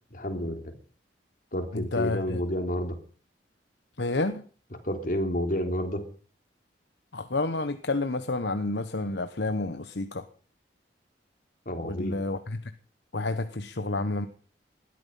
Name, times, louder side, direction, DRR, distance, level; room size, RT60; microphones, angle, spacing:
voice 1, 0.1-0.7 1.5-3.0 4.8-6.0 11.7-12.2, equal, 50° left, 5 dB, 3.5 m, -30 dB
voice 2, 1.7-2.4 4.0-4.4 7.1-10.2 11.8-12.6 13.1-14.3, left 2 dB, 65° left, 10 dB, 1.1 m, -29 dB
19.5 x 13.0 x 5.6 m, 0.41 s
head